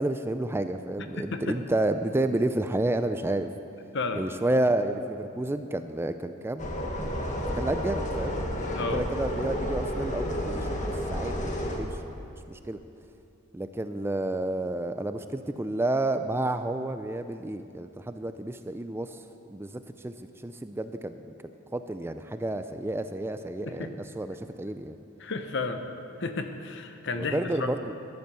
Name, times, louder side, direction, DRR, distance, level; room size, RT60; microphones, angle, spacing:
voice 1, 0.0-3.5 4.2-6.7 7.6-8.4 8.9-12.0 12.5-12.8 13.5-19.2 19.5-20.1 20.4-21.3 21.7-25.0 27.2-27.9, right 1 dB, 10° right, 9 dB, 0.4 m, -30 dB
voice 2, 1.2-1.6 3.9-4.3 8.7-9.0 23.6-23.9 25.2-25.8 26.2-27.7, left 3 dB, 60° left, 7 dB, 1.0 m, -32 dB
sound 1, 6.6-11.8, equal, 35° left, 1.6 m, -31 dB
13.5 x 10.5 x 6.9 m, 2.6 s
head